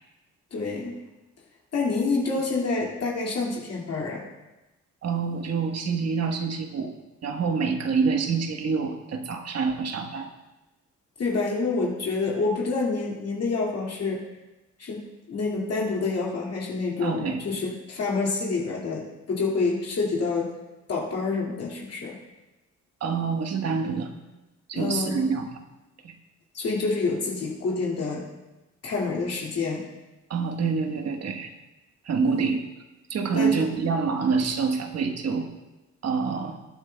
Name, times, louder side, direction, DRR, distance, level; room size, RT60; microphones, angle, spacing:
voice 1, 0.5-1.0 1.7-4.2 11.2-14.2 14.8-15.0 15.3-20.5 20.9-22.2 24.7-25.3 26.5-28.3 28.8-29.8 32.2-32.5 33.3-33.7, left 3 dB, 55° left, -3 dB, 2.2 m, -27 dB
voice 2, 5.0-6.9 7.2-10.3 17.0-17.4 23.0-24.1 24.7-25.5 26.0-26.1 30.3-31.5 32.0-32.6 33.1-35.5 36.0-36.6, right 5 dB, 55° right, 4 dB, 1.3 m, -26 dB
21.0 x 9.2 x 2.3 m, 1.0 s
cardioid pair, 90°, 30 cm